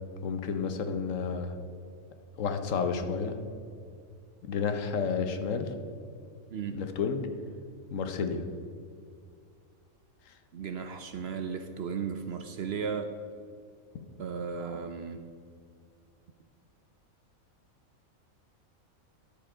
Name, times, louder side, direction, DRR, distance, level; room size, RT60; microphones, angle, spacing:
voice 1, 0.2-1.5 2.4-3.4 4.4-5.7 6.7-7.3 7.9-8.4, left 5 dB, 70° left, 7 dB, 1.2 m, -31 dB
voice 2, 6.5-6.8 10.5-13.1 14.2-15.2, right 6 dB, 60° right, 7 dB, 0.7 m, -35 dB
10.0 x 6.9 x 4.9 m, 2.3 s
omnidirectional pair, 1.4 m